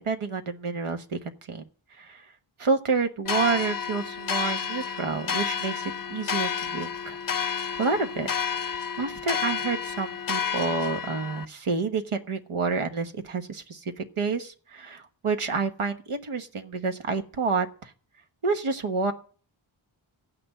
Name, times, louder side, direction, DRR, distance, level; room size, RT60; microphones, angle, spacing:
voice 1, 0.0-1.6 2.0-2.2 2.6-5.8 6.1-7.2 7.8-8.3 9.0-17.9 18.4-19.1, right 4 dB, 90° right, 6 dB, 1.4 m, -29 dB
sound 1, 3.2-11.4, left 7 dB, 45° left, 0.5 m, -30 dB
15.0 x 6.1 x 9.1 m, 0.43 s
wide cardioid pair, 70°, 49 cm